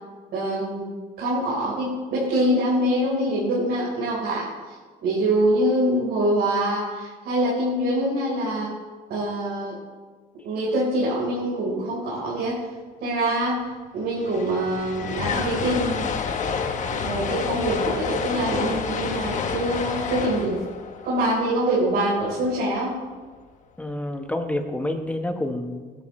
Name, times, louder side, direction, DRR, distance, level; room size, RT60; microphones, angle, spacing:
voice 1, 0.3-0.9 1.2-4.5 5.0-8.7 9.1-9.7 10.4-12.6 13.0-13.6 13.9-16.0 16.9-20.6 21.0-22.9, right 1 dB, 70° right, -6 dB, 4.3 m, -24 dB
sound 1, 13.7-13.8 14.0-22.2, left 5 dB, 45° left, 1.2 m, -29 dB
voice 2, 23.8-25.9, left 1 dB, 10° left, 5 dB, 1.3 m, -28 dB
19.5 x 11.0 x 3.3 m, 1.4 s
cardioid pair, 110°, 17 cm